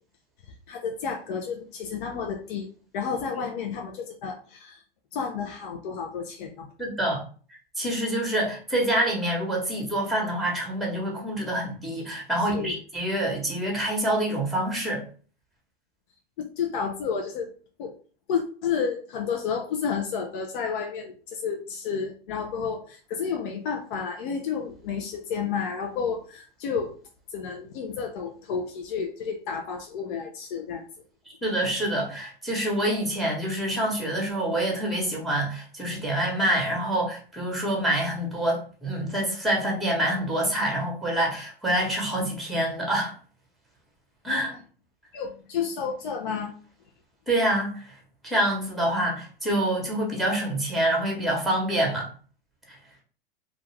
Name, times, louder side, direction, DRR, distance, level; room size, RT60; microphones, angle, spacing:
voice 1, 0.7-2.7 2.9-4.8 5.1-6.7 12.4-12.8 16.4-17.5 17.8-17.9 18.3-27.0 27.3-30.8 45.1-46.5, left 6 dB, 55° left, 3 dB, 0.6 m, -31 dB
voice 2, 6.8-7.2 7.8-15.0 31.4-43.1 44.2-44.5 47.3-47.9 48.2-52.1 52.7-52.8, right 1 dB, ahead, -1 dB, 1.0 m, -26 dB
2.4 x 2.3 x 3.1 m, 0.41 s
hypercardioid pair, 100°, 30 cm